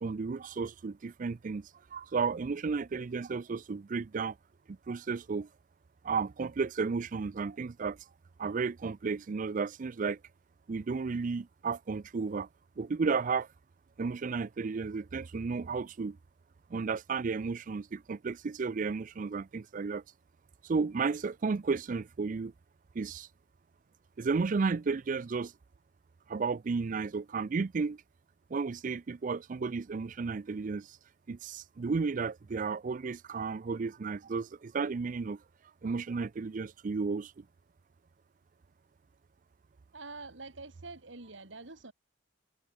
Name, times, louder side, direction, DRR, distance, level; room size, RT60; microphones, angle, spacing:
voice 1, 0.0-4.4 4.7-5.5 6.0-8.0 8.4-10.2 10.7-12.5 12.8-13.5 14.0-16.2 16.7-20.0 20.6-22.5 22.9-23.3 24.2-25.5 26.3-28.0 28.5-31.0 31.3-35.4 35.8-37.4, right 4 dB, 40° right, 0.4 m, -33 dB
voice 2, 39.9-41.9, right 3 dB, 75° right, 2.4 m, -46 dB
head